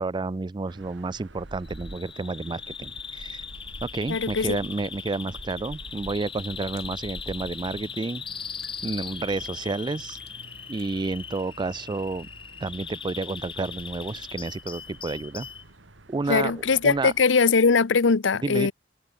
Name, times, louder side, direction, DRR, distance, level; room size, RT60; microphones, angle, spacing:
voice 1, 0.0-3.4 3.8-8.2 8.8-10.2 10.7-12.3 12.6-15.5 16.1-16.5 16.8-17.1 18.4-18.7, right 3 dB, 25° right, 0.4 m, -30 dB
sound 1, 0.7-17.2, right 1 dB, 75° right, 2.3 m, -47 dB
Bird vocalization bird call bird song, 1.6-15.6, left 7 dB, 30° left, 1.4 m, -39 dB
voice 2, 4.1-4.6 16.3-18.7, left 5 dB, 80° left, 0.7 m, -21 dB
sound 2, 6.3-11.2, left 10 dB, 60° left, 7.2 m, -60 dB
head